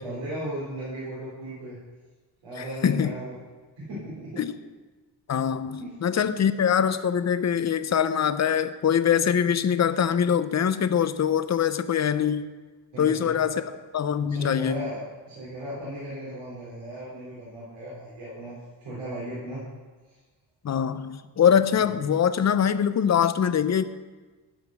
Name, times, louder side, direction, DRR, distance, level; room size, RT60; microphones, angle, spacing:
voice 1, 0.0-1.8 2.4-3.4 3.8-4.4 5.8-6.3 12.9-13.6 14.3-15.0 15.3-19.7 20.1-20.2 21.7-21.9, right 1 dB, 80° right, -9 dB, 3.7 m, -37 dB
voice 2, 5.3-12.5 13.0-13.6 13.9-14.9 20.6-23.8, left 8 dB, 40° left, 13 dB, 0.6 m, -23 dB
13.0 x 5.4 x 6.2 m, 1.3 s
cardioid pair, 85°, 45 cm